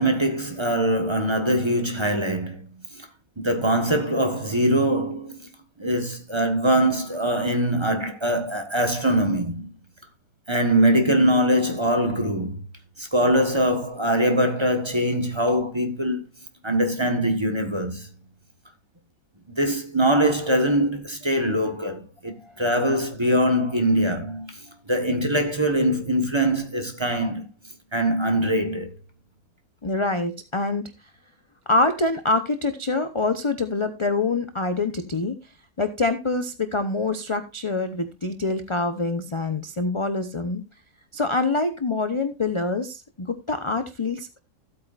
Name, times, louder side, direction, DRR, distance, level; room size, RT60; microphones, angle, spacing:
voice 1, 0.0-2.7 2.9-3.1 3.4-5.4 5.8-9.7 10.5-12.6 13.0-16.3 16.6-18.1 19.5-24.6 24.9-27.4 27.9-28.9, right 1 dB, 20° right, 1.3 m, -22 dB
voice 2, 29.8-30.9 31.7-35.4 35.8-40.6 41.1-44.4, left 3 dB, 25° left, 0.6 m, -25 dB
15.5 x 8.7 x 2.5 m
omnidirectional pair, 1.7 m